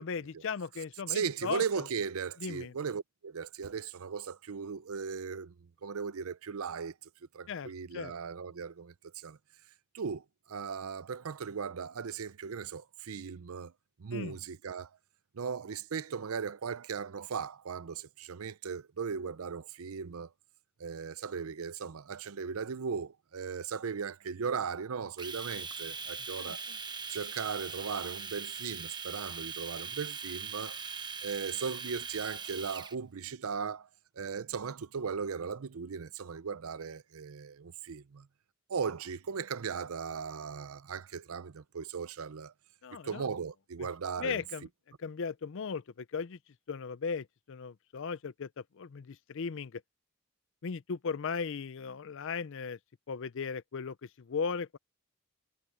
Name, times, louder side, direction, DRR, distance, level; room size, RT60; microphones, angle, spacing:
voice 1, 0.0-1.9 2.4-2.7 7.5-8.1 14.1-14.4 26.4-26.8 42.8-43.3 43.8-43.9 44.2-44.7 45.0-46.4 46.7-49.8 50.6-52.8 53.1-54.8, left 5 dB, 60° left, 0.5 m, -37 dB
voice 2, 1.1-5.5 5.8-6.9 7.3-9.4 9.9-13.7 14.0-14.9 15.3-20.3 20.8-26.6 27.1-30.8 31.2-33.9 34.2-38.3 38.7-42.5 43.0-44.4, right 6 dB, 80° right, 0.6 m, -37 dB
Domestic sounds home sounds, 25.2-32.9, right 5 dB, 20° right, 1.0 m, -41 dB
head